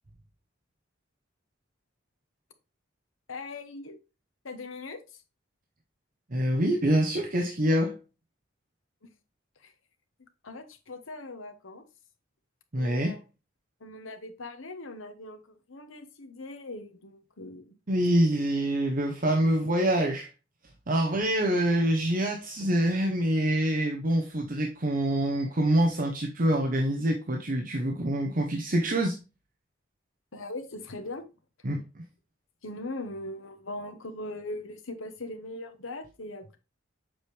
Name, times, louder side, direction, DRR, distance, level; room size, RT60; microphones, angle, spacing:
voice 1, 3.3-4.0 4.4-5.2 9.6-9.7 10.4-11.8 12.7-13.2 13.8-17.8 30.3-31.3 32.6-36.6, left 2 dB, 90° left, 1.2 m, -40 dB
voice 2, 6.3-8.0 12.7-13.1 17.9-20.3 20.9-29.2 31.6-32.0, right 1 dB, 45° right, 0.9 m, -26 dB
7.3 x 5.0 x 3.3 m
head